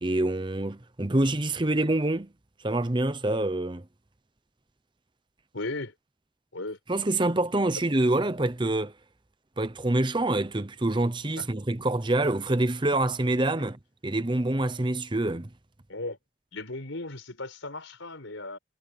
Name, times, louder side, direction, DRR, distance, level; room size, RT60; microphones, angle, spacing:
voice 1, 0.0-2.3 2.6-3.8 6.9-8.9 9.6-13.8 14.0-15.5, right 2 dB, 25° right, 0.9 m, -26 dB
voice 2, 5.5-5.9 6.5-6.8 11.4-11.5 15.9-16.2 16.5-18.6, left 2 dB, 90° left, 4.9 m, -36 dB
head